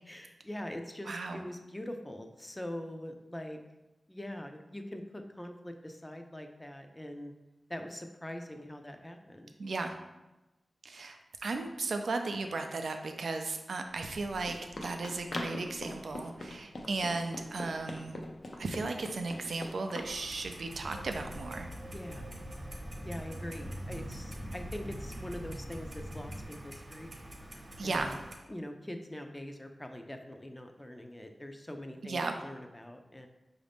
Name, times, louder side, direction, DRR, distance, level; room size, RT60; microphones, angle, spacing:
voice 1, 0.1-3.6 4.1-7.3 7.7-9.5 21.9-22.3 23.0-27.1 27.8-28.2 28.5-33.3, left 1 dB, 20° left, 5 dB, 0.5 m, -43 dB
voice 2, 1.1-1.4 9.6-9.9 10.8-18.2 18.6-21.7 27.8-28.1 32.0-32.3, right 3 dB, 85° right, 5 dB, 0.4 m, -35 dB
Run, 13.9-20.1, left 1 dB, 70° left, 0.6 m, -42 dB
Clock, 20.0-28.4, right 1 dB, 45° right, 0.9 m, -47 dB
sound 1, 20.8-26.5, equal, 40° left, 0.8 m, -43 dB
4.8 x 2.6 x 3.4 m, 1.0 s
cardioid pair, 55°, 0 cm